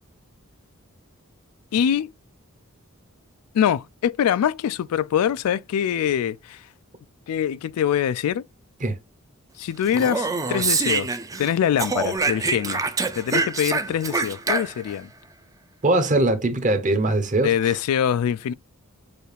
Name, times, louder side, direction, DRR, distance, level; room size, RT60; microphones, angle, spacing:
voice 1, 1.7-2.1 3.5-6.6 7.3-8.4 9.6-12.8 13.2-15.1 17.4-18.5, left 9 dB, 85° left, 0.3 m, -24 dB
Speech, 9.9-11.5 11.8-15.0, right 4 dB, 15° right, 0.4 m, -25 dB
voice 2, 15.8-17.7, right 2 dB, 35° right, 0.9 m, -21 dB
6.7 x 2.4 x 3.3 m
head